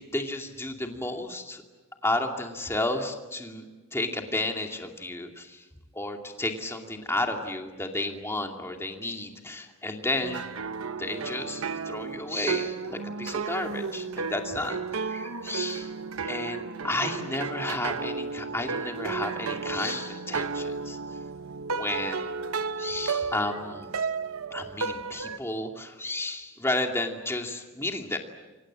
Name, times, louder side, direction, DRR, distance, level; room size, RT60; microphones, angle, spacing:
voice 1, 0.0-1.6 2.0-3.7 3.9-5.7 5.9-10.5 11.0-15.9 16.2-21.0 21.7-22.3 22.8-23.9 24.5-28.2, left 2 dB, 10° left, 3 dB, 2.5 m, -32 dB
sound 1, 10.2-25.4, right 5 dB, 70° right, 1.0 m, -33 dB
29.0 x 25.0 x 7.6 m, 1.2 s
head